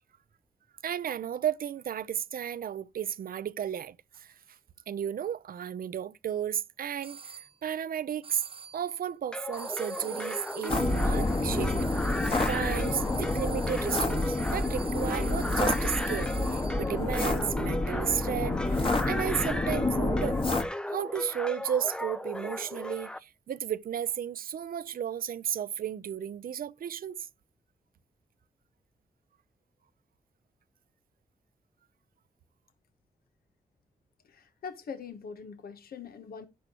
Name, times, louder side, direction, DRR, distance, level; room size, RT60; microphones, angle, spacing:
voice 1, 0.8-4.3 4.9-8.4 8.7-12.2 12.5-20.4 20.9-27.2, right 9 dB, 70° right, 0.6 m, -33 dB
sound 1, 7.0-7.5 8.2-8.9 9.5-16.9, right 7 dB, 35° right, 1.1 m, -44 dB
sound 2, 9.3-23.2, left 1 dB, 5° left, 0.5 m, -36 dB
sound 3, 10.7-20.6, left 2 dB, 35° left, 1.6 m, -29 dB
voice 2, 34.2-36.5, left 6 dB, 80° left, 1.2 m, -42 dB
10.5 x 10.0 x 3.0 m
cardioid pair, 80°, 15 cm